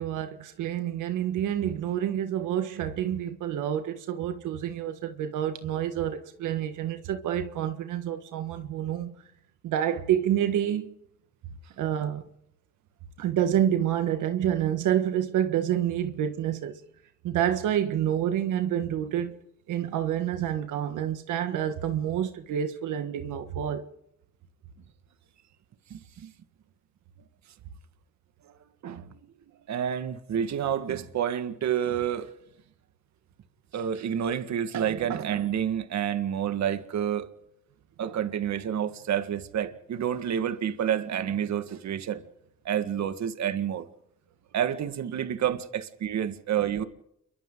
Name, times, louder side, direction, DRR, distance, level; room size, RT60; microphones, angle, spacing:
voice 1, 0.0-9.2 9.6-10.9 11.8-12.2 13.2-16.8 17.2-19.4 19.7-23.9, right 10 dB, 85° right, 1.6 m, -28 dB
voice 2, 25.9-26.3 28.8-29.2 29.7-32.3 33.7-37.3 38.0-42.2 42.7-43.9 44.5-46.8, right 9 dB, 65° right, 1.9 m, -29 dB
29.0 x 23.5 x 3.9 m
cardioid pair, 90°, 30 cm